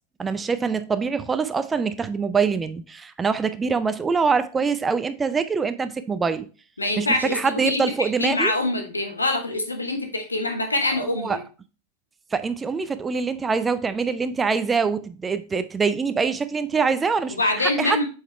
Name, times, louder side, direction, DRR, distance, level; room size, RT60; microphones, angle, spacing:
voice 1, 0.2-6.5 7.0-8.5 11.0-11.4 12.3-18.0, right 5 dB, 15° right, 0.5 m, -24 dB
voice 2, 6.8-11.4 17.3-18.1, left 2 dB, 80° left, 1.4 m, -25 dB
7.7 x 4.8 x 3.0 m
figure-of-eight pair, 90°, 0 cm